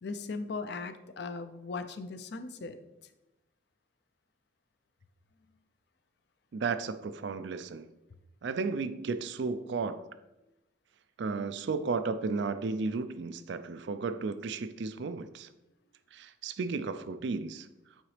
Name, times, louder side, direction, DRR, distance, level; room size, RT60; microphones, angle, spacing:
voice 1, 0.0-2.8, left 4 dB, 55° left, 10 dB, 0.5 m, -38 dB
voice 2, 6.5-7.9 8.4-10.0 11.2-15.5 16.1-17.7, right 4 dB, 60° right, 12 dB, 0.4 m, -34 dB
8.9 x 3.9 x 3.2 m, 0.95 s
head